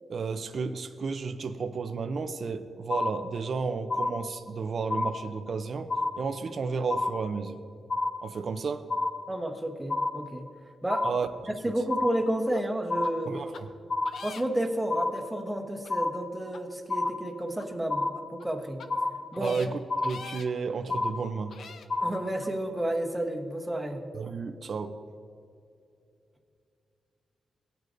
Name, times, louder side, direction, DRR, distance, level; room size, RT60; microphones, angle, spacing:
voice 1, 0.1-5.9 6.2-7.6 8.2-8.9 11.0-11.3 13.3-13.7 19.4-21.6 24.1-24.9, right 5 dB, 55° right, 8 dB, 0.5 m, -32 dB
sound 1, 2.9-3.6 3.9-4.6 4.9-5.6 5.9-6.6 6.9-7.6 7.9-8.6 8.9-9.6 9.9-10.6 10.9-11.6 11.9-12.6 12.9-13.6 13.9-14.6 14.9-15.6 15.9-16.6 16.9-17.6 17.9-18.6 18.9-19.6 19.9-20.6 20.9-21.6 21.9-22.6, left 2 dB, 35° left, 0.8 m, -31 dB
voice 2, 9.3-10.5 10.8-11.1 11.6-13.3 14.2-18.9 19.3-19.6 22.0-24.1, right 1 dB, 10° right, 2 dB, 1.1 m, -31 dB
sound 2, 12.5-12.6 13.0-13.1 13.5-13.6 14.0-14.7 15.1-15.2 15.8-15.9 16.5-16.6 17.0-17.1 17.6-17.7 18.3-18.4 18.8-18.9 19.3-19.7 20.0-20.5 21.1-21.2 21.5-21.9 22.4-22.5, left 5 dB, 70° left, 0.7 m, -44 dB
18.0 x 9.2 x 2.6 m, 2.6 s
wide cardioid pair, 125°, 0 cm